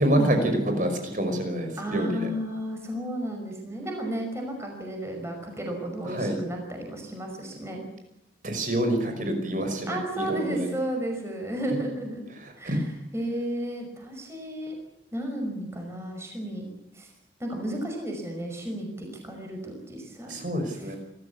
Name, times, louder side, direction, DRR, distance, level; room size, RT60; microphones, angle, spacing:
voice 1, 0.0-2.3 6.0-6.4 8.4-10.7 12.4-12.8 20.3-21.0, right 1 dB, 45° right, 6 dB, 5.5 m, -27 dB
voice 2, 1.8-7.8 9.9-12.2 12.6-14.8 15.1-16.7 16.9-17.1 17.4-20.4 20.8-21.0, right 1 dB, 15° right, 2 dB, 5.6 m, -33 dB
28.5 x 14.5 x 8.4 m, 0.85 s
head